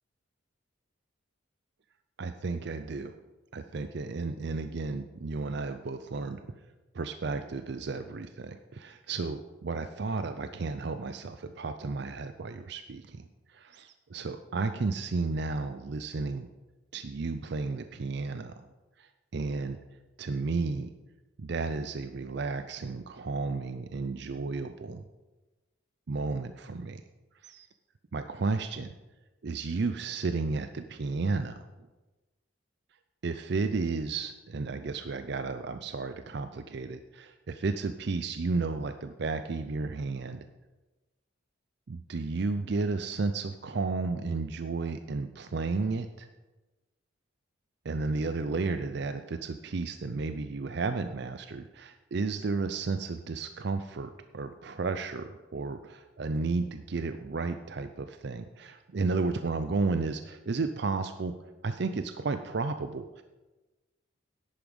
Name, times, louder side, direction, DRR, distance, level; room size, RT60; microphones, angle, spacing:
voice 1, 2.2-3.2 3.5-6.4 6.9-16.5 16.9-18.7 19.0-19.8 20.2-20.9 21.4-25.0 26.1-27.0 27.4-27.7 28.1-28.9 29.4-31.7 33.2-40.4 41.9-46.3 47.8-61.3 61.6-63.2, right 3 dB, 55° right, 9 dB, 0.5 m, -33 dB
11.0 x 8.8 x 5.3 m, 1.1 s
head